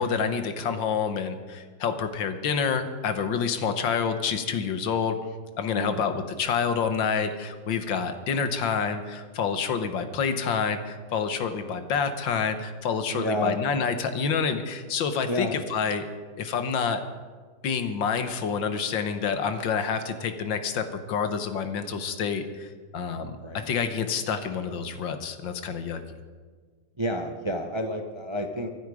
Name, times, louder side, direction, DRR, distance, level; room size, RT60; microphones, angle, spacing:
voice 1, 0.0-5.2 5.6-16.1 16.4-17.0 17.6-26.0, left 6 dB, 85° left, 9 dB, 1.8 m, -28 dB
voice 2, 5.7-6.0 13.1-13.6 15.3-15.5 23.4-23.7 27.0-28.7, equal, 25° right, 5 dB, 0.6 m, -30 dB
24.5 x 9.0 x 4.9 m, 1.5 s
omnidirectional pair, 2.0 m